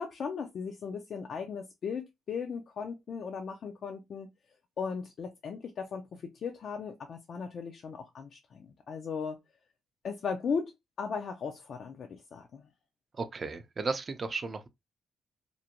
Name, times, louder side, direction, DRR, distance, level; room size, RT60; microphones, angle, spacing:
voice 1, 0.0-4.3 4.8-9.4 10.0-12.7, left 5 dB, 55° left, 0.4 m, -37 dB
voice 2, 13.1-14.7, right 4 dB, 35° right, 0.4 m, -34 dB
2.5 x 2.1 x 2.8 m
cardioid pair, 90°, 0 cm